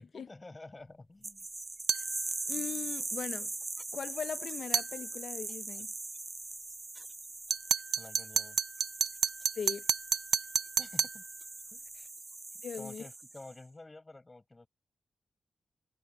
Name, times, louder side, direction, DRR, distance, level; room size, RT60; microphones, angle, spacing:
voice 1, 0.0-1.5 8.0-8.6 10.8-11.2 11.7-11.8 12.5-14.7, left 2 dB, 20° left, 7.7 m, -50 dB
sound 1, 1.2-13.5, right 3 dB, 20° right, 0.6 m, -41 dB
sound 2, 1.9-2.1 4.7-4.9 7.5-11.2, right 7 dB, 85° right, 0.4 m, -30 dB
voice 2, 2.5-3.5 3.9-5.9 9.5-9.8 12.0-12.1 12.6-13.1, left 7 dB, 75° left, 0.6 m, -40 dB
wide cardioid pair, 180°, 0 cm